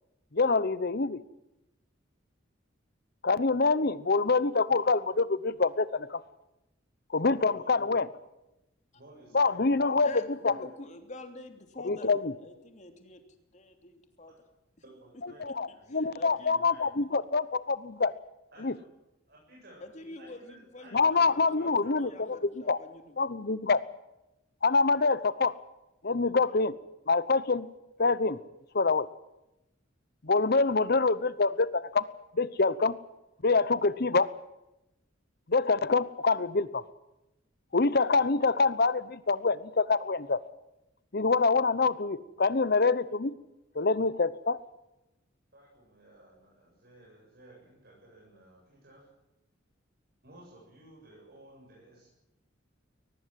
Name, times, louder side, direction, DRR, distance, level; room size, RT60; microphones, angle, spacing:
voice 1, 0.3-1.2 3.2-6.2 7.1-8.1 9.3-10.1 10.4-10.5 11.9-12.3 15.4-18.1 18.6-18.7 20.9-22.1 22.7-22.8 23.2-23.8 24.6-25.6 26.0-26.7 27.1-27.7 28.0-28.4 28.7-29.1 30.2-32.0 32.3-32.9 33.4-34.3 35.5-36.8 37.7-40.4 41.1-43.3 43.7-44.6, left 4 dB, 55° left, 16 dB, 0.9 m, -25 dB
voice 2, 7.3-7.9 8.9-9.9 10.4-10.6 14.3-14.4 14.8-16.9 18.5-18.9 19.3-22.3 45.5-49.1 50.2-52.1, right 1 dB, 55° right, -3 dB, 7.6 m, -55 dB
voice 3, 9.9-13.2 13.5-14.3 15.5-16.6 19.8-23.2, left 2 dB, 35° left, 5 dB, 3.1 m, -46 dB
22.5 x 19.5 x 7.7 m, 0.93 s
head